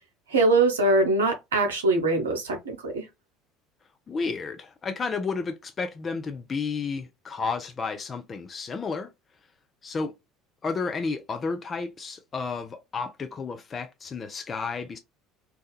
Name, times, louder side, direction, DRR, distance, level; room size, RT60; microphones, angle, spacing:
voice 1, 0.3-3.1, right 2 dB, 75° right, 0.8 m, -22 dB
voice 2, 4.1-9.1 9.8-10.1 10.6-15.0, left 4 dB, 30° left, 0.4 m, -32 dB
2.7 x 2.3 x 2.3 m
figure-of-eight pair, 65°, 0 cm